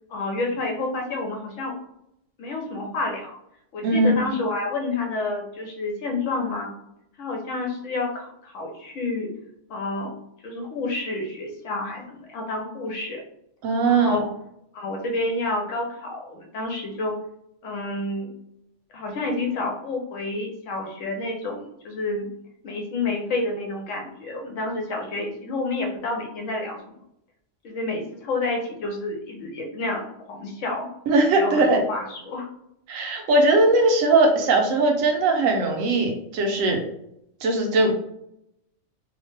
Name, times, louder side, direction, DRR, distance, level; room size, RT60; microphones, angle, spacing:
voice 1, 0.1-1.7 2.4-3.4 3.7-6.7 7.2-9.3 9.7-10.1 10.4-13.2 13.9-14.3 14.7-17.2 17.6-18.3 18.9-22.3 22.6-27.0 27.6-30.9 31.3-32.5, left 2 dB, 75° left, 1 dB, 1.1 m, -29 dB
voice 2, 3.8-4.3 13.6-14.2 31.1-31.8 32.9-36.8 37.4-38.0, right 2 dB, 90° right, 3 dB, 1.1 m, -20 dB
2.8 x 2.1 x 3.2 m, 0.77 s
omnidirectional pair, 1.3 m